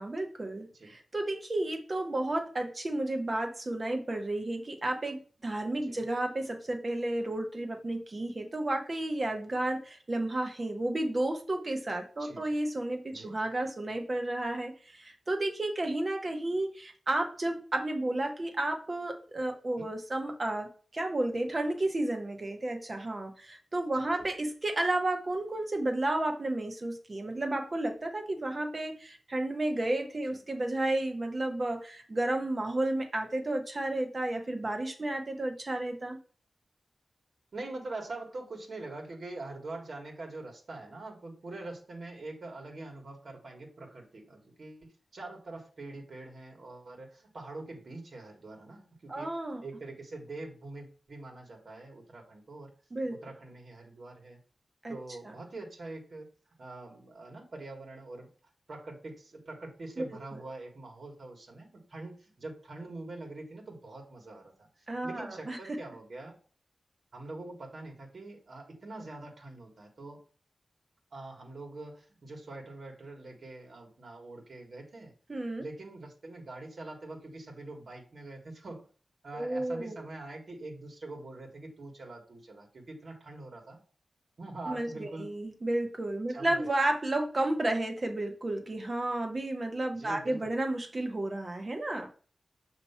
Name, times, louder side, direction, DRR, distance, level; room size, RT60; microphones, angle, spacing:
voice 1, 0.0-36.2 49.1-49.6 52.9-53.2 54.8-55.0 55.2-55.3 60.0-60.1 64.9-65.8 75.3-75.6 79.3-80.0 84.7-92.1, right 1 dB, 40° right, 4 dB, 1.1 m, -32 dB
voice 2, 12.2-12.6 13.1-13.3 19.8-19.9 23.9-24.3 30.3-30.4 37.5-49.3 49.6-52.7 53.1-54.4 54.9-56.3 56.6-58.3 58.7-66.3 67.1-70.2 71.1-75.1 75.6-78.8 79.2-83.8 84.4-85.3 86.3-86.7 89.9-90.5, right 2 dB, 60° right, 1 dB, 1.6 m, -44 dB
6.8 x 3.0 x 5.6 m, 0.40 s
wide cardioid pair, 110°, 0 cm